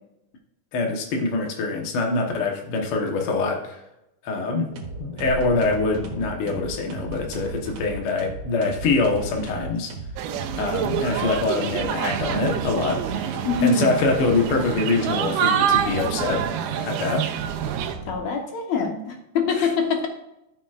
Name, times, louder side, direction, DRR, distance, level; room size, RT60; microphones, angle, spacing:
voice 1, 0.7-3.8 4.2-4.7 5.0-9.9 10.5-13.0 13.6-16.5 16.8-17.3 19.6-19.7, left 3 dB, 80° left, 1 dB, 1.2 m, -24 dB
sound 1, 4.7-14.7 15.5-18.2, right 4 dB, 70° right, 3.1 m, -35 dB
sound 2, 10.2-18.0, right 9 dB, 90° right, 2.6 m, -27 dB
voice 2, 13.4-13.8 18.1-20.1, left 6 dB, 65° left, 2 dB, 1.9 m, -24 dB
13.0 x 7.2 x 2.5 m, 0.87 s
omnidirectional pair, 4.4 m